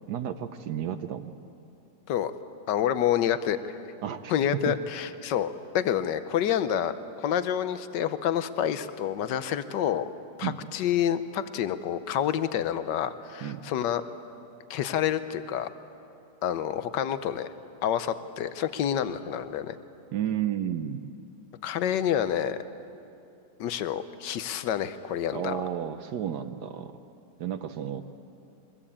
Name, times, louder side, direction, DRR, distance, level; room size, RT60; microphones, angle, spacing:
voice 1, 0.1-1.3 4.0-4.7 10.4-10.6 13.4-13.6 20.1-21.1 25.3-26.9 27.4-28.0, right 10 dB, 70° right, 8 dB, 1.3 m, -32 dB
voice 2, 2.7-3.6 4.3-6.9 7.2-10.1 10.4-14.0 14.7-15.7 16.4-17.5 17.8-19.8 21.6-22.6 23.6-25.6, left 10 dB, 85° left, 12 dB, 1.5 m, -28 dB
22.5 x 21.5 x 8.7 m, 2.7 s
omnidirectional pair, 1.8 m